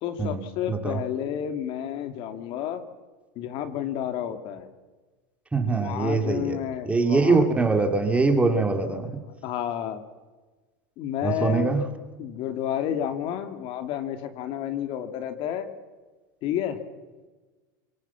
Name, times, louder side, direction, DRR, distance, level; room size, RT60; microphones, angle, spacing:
voice 1, 0.0-2.8 3.4-4.7 5.8-7.5 9.4-10.0 11.0-11.8 12.2-15.7 16.4-16.8, left 10 dB, 50° left, 8 dB, 2.4 m, -30 dB
voice 2, 0.7-1.0 5.5-9.1 11.2-11.8, right 3 dB, 10° right, 5 dB, 2.8 m, -23 dB
25.0 x 22.0 x 7.3 m, 1.3 s
supercardioid pair, 125°, 11 cm